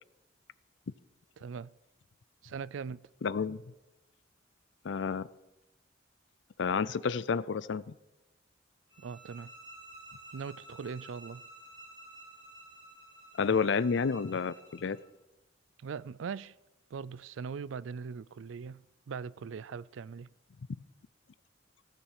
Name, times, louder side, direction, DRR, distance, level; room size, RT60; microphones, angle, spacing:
voice 1, 1.4-1.7 2.4-3.0 9.0-9.5 10.3-11.4 15.8-16.6 16.9-20.3, right 6 dB, 85° right, 0.4 m, -41 dB
voice 2, 3.2-3.6 4.8-5.3 6.6-7.9 13.4-15.0, left 5 dB, 70° left, 0.4 m, -30 dB
sound 1, 8.9-15.0, right 2 dB, 25° right, 5.1 m, -52 dB
15.5 x 7.0 x 7.3 m
head